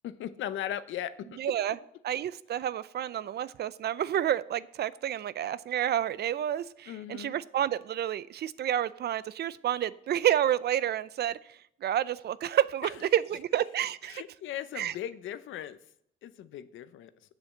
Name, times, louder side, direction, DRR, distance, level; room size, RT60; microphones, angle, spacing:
voice 1, 0.0-1.4 6.9-7.3 12.8-13.0 14.1-15.8 16.2-17.1, left 11 dB, 80° left, 0.7 m, -38 dB
voice 2, 1.4-1.8 2.0-11.4 11.8-14.2 14.8-14.9, right 11 dB, 55° right, 0.5 m, -29 dB
7.8 x 7.0 x 7.2 m
cardioid pair, 90°, 20 cm